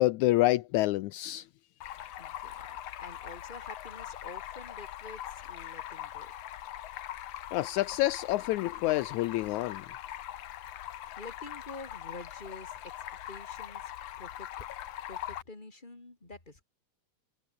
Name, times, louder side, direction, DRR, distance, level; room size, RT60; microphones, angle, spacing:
voice 1, 0.0-1.5 7.5-9.8, left 17 dB, 80° left, 2.0 m, -27 dB
Stream, 1.8-15.4, left 12 dB, 60° left, 1.9 m, -42 dB
voice 2, 2.2-6.3 11.2-12.9 13.3-13.9 14.2-14.7 15.1-16.6, left 2 dB, 15° left, 4.1 m, -48 dB
omnidirectional pair, 3.6 m